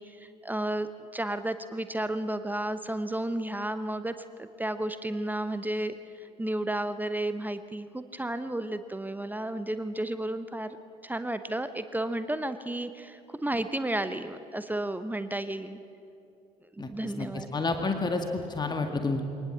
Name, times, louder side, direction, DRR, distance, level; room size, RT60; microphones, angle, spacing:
voice 1, 0.0-10.8 11.0-15.8 16.9-17.5, right 1 dB, 10° right, 11 dB, 1.0 m, -32 dB
voice 2, 16.8-19.2, left 3 dB, 20° left, 5 dB, 2.0 m, -30 dB
23.5 x 19.0 x 7.7 m, 2.7 s
figure-of-eight pair, 50°, 20 cm